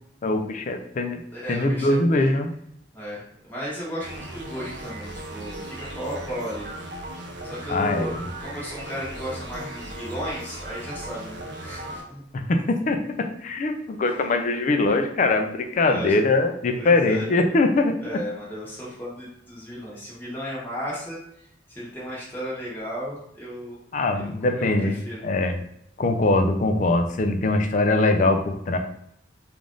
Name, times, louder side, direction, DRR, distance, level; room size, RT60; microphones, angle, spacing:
voice 1, 0.2-1.2 1.5-2.5 7.7-8.1 12.3-18.2 23.9-25.5 26.0-28.8, left 2 dB, 40° left, 6 dB, 0.4 m, -22 dB
voice 2, 1.3-2.3 2.9-6.7 7.4-12.2 15.9-16.1 16.7-17.3 18.0-21.2 21.7-23.8 24.1-24.3 24.5-25.2, equal, 10° left, -7 dB, 1.1 m, -35 dB
sound 1, 4.0-12.0, right 1 dB, 60° right, 0.6 m, -37 dB
3.4 x 2.5 x 3.7 m, 0.73 s
head